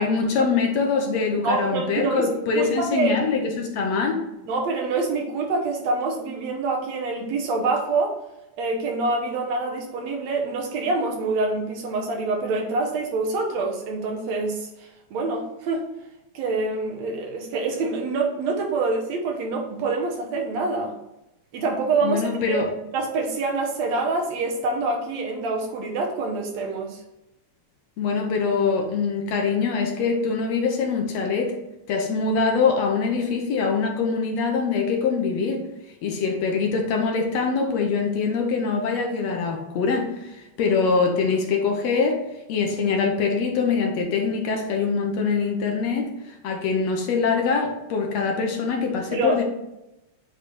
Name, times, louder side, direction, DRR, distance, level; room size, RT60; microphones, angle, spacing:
voice 1, 0.0-4.2 22.0-22.7 28.0-31.5 31.9-35.6 36.0-42.2 42.5-46.1 46.4-49.4, left 5 dB, 70° left, 1 dB, 2.0 m, -23 dB
voice 2, 1.4-2.3 2.5-3.1 4.5-8.2 8.6-14.7 15.1-15.9 16.3-21.0 21.5-22.6 22.9-27.0 49.1-49.4, right 3 dB, 70° right, 1 dB, 2.2 m, -26 dB
8.3 x 3.3 x 4.2 m, 0.93 s
omnidirectional pair, 3.3 m